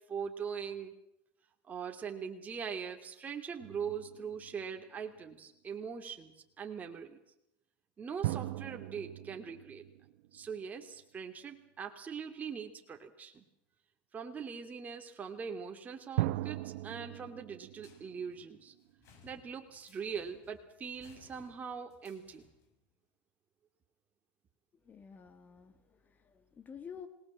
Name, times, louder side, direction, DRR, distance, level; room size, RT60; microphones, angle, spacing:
voice 1, 0.1-0.9 1.6-7.2 8.0-9.8 10.3-13.4 14.1-18.7 19.2-22.4, right 6 dB, 25° right, 3 dB, 2.8 m, -42 dB
sound 1, 3.6-5.3 8.2-10.9 16.2-19.2, right 17 dB, 75° right, 0.9 m, -39 dB
sound 2, 17.8-22.8, left 6 dB, 50° left, 7.3 m, -63 dB
voice 2, 24.8-27.1, left 7 dB, 30° left, 11 dB, 2.3 m, -50 dB
27.0 x 19.5 x 7.6 m, 0.79 s
supercardioid pair, 115°, 6 cm